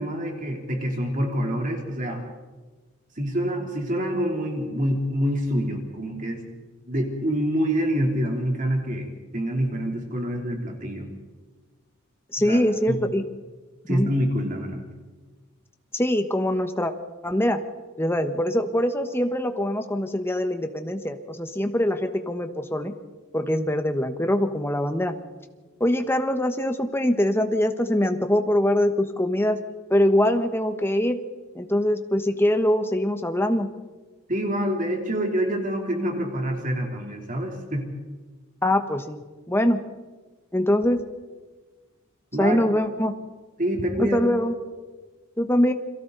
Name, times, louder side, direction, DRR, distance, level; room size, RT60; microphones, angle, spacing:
voice 1, 0.0-2.2 3.1-6.5 6.8-11.1 12.4-12.6 12.9-13.0 13.9-14.8 34.3-37.9 42.3-42.6 43.6-44.2, equal, 40° right, 1 dB, 3.4 m, -26 dB
voice 2, 12.3-13.2 13.9-14.1 15.9-16.9 17.2-17.6 18.0-22.9 23.3-25.1 25.8-29.6 29.9-31.2 31.5-33.7 38.6-39.2 39.5-39.8 40.5-41.0 42.4-43.1 44.0-44.5 45.4-45.7, left 1 dB, 10° left, 7 dB, 1.3 m, -23 dB
30.0 x 23.0 x 4.1 m, 1.3 s
head